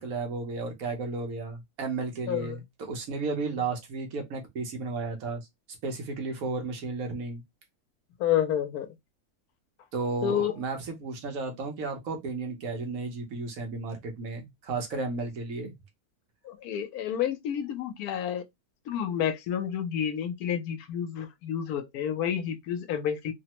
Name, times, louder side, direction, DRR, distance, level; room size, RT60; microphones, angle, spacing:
voice 1, 0.0-5.5 5.8-7.4 9.9-15.7, right 3 dB, 70° right, 1.2 m, -33 dB
voice 2, 8.2-8.9 10.2-10.5 16.4-18.5 18.9-23.3, left 9 dB, 85° left, 1.1 m, -29 dB
3.1 x 2.1 x 2.8 m
omnidirectional pair, 1.5 m